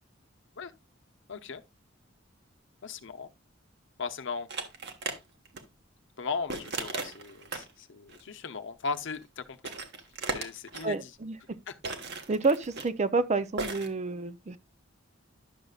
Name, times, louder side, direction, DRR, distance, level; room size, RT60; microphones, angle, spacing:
voice 1, 1.3-1.6 2.8-3.3 4.0-4.5 6.2-9.6 10.3-11.1 11.7-11.8, left 4 dB, 65° left, 0.8 m, -37 dB
sound 1, 4.5-5.2 5.4-5.6 6.5-7.7 8.1-8.2 9.1-9.2 9.5-10.9 11.8-12.9 13.6-13.9, right 3 dB, 60° right, 1.3 m, -36 dB
voice 2, 10.8-11.6 12.3-14.6, right 3 dB, 35° right, 0.5 m, -29 dB
11.0 x 6.6 x 2.4 m
head